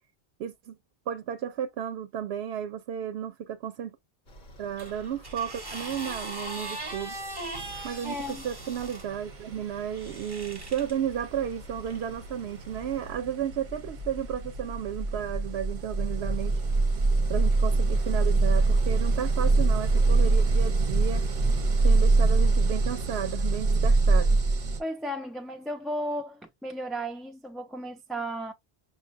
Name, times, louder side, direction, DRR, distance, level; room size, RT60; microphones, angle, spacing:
voice 1, 0.4-0.8 1.1-3.9 4.6-7.2 7.8-16.6 17.3-21.3 21.8-24.4, right 9 dB, 90° right, 0.8 m, -33 dB
sound 1, 4.3-13.1, left 1 dB, 50° left, 1.0 m, -50 dB
sound 2, 4.8-9.1 9.9-10.9 11.9-12.0, right 1 dB, 25° right, 1.0 m, -39 dB
sound 3, 7.0-7.2 7.5-24.8, right 3 dB, 50° right, 0.8 m, -25 dB
voice 2, 8.0-8.5 24.8-28.5, equal, ahead, 0.4 m, -34 dB
6.0 x 2.3 x 2.5 m
omnidirectional pair, 1.0 m